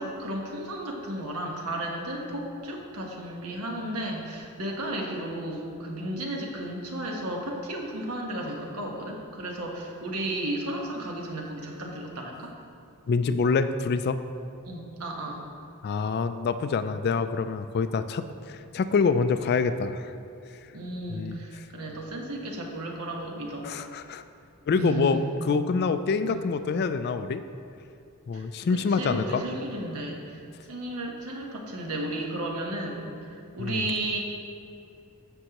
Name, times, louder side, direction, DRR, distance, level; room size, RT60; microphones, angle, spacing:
voice 1, 0.0-12.5 14.6-15.5 20.7-23.7 24.8-25.3 26.2-26.4 28.3-28.4 28.9-30.4 30.7-34.2, right 1 dB, 80° right, 0 dB, 1.2 m, -34 dB
voice 2, 13.1-14.2 15.8-20.1 21.1-21.4 23.6-24.2 24.7-27.4 28.3-29.4 33.6-33.9, left 5 dB, 45° left, 11 dB, 0.3 m, -26 dB
14.0 x 5.4 x 2.9 m, 2.6 s
head